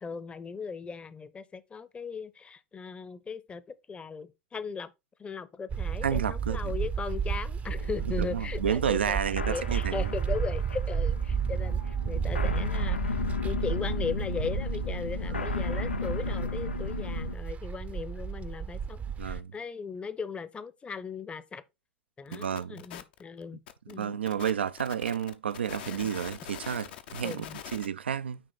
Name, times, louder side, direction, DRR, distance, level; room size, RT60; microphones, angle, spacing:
voice 1, 0.0-3.6 3.9-4.9 5.2-9.2 9.5-21.6 22.2-23.6 23.9-24.2 25.9-26.0 27.2-27.6, left 5 dB, 20° left, 0.7 m, -38 dB
sound 1, 5.7-19.4, right 7 dB, 25° right, 0.6 m, -32 dB
voice 2, 6.0-6.6 8.1-10.1 15.3-15.4 19.2-19.5 22.3-22.8 23.9-28.4, right 8 dB, 80° right, 0.4 m, -31 dB
sound 2, 7.7-17.3, left 5 dB, 90° left, 0.4 m, -35 dB
sound 3, 22.3-27.9, left 10 dB, 65° left, 0.8 m, -43 dB
9.2 x 3.2 x 4.0 m
figure-of-eight pair, 85°, 6 cm